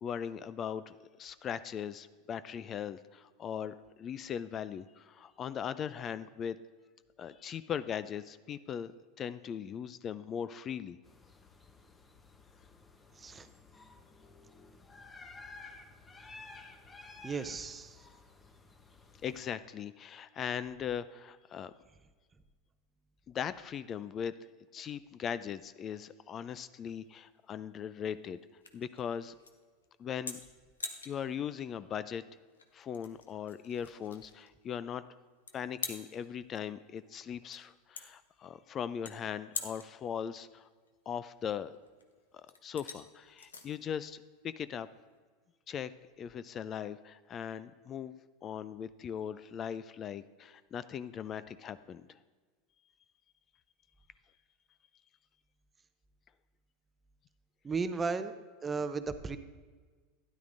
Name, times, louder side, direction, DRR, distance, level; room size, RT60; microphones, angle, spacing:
voice 1, 0.0-6.6 7.2-8.9 9.2-11.0 19.2-21.7 23.3-24.3 24.7-28.4 28.7-29.3 30.0-30.4 31.1-32.2 32.7-35.0 35.5-40.7 41.1-41.7 42.3-44.9 45.7-45.9 46.2-48.2 48.4-52.2, left 8 dB, 35° left, 15 dB, 0.4 m, -39 dB
sound 1, 11.0-19.5, left 3 dB, 20° left, 0.9 m, -54 dB
voice 2, 17.2-18.0 57.6-58.3 58.6-59.4, right 4 dB, 20° right, 11 dB, 0.6 m, -35 dB
sound 2, 26.4-45.2, left 4 dB, 90° left, 0.8 m, -48 dB
12.5 x 10.0 x 2.6 m, 1.4 s
hypercardioid pair, 90°, 0 cm